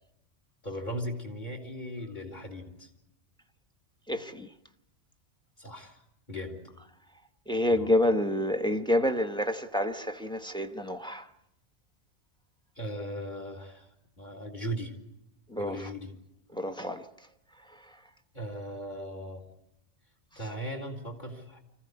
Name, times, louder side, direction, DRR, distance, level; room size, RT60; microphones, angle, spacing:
voice 1, 0.6-2.9 5.6-6.0 6.3-6.6 7.7-7.9 12.8-13.9 14.2-14.9 15.6-16.1 18.3-19.4 20.4-21.6, equal, 40° left, 3.7 m, -38 dB
voice 2, 4.1-4.5 7.5-11.3 15.5-15.8 16.5-17.0, left 1 dB, 5° left, 1.0 m, -28 dB
25.5 x 15.5 x 9.8 m
omnidirectional pair, 1.3 m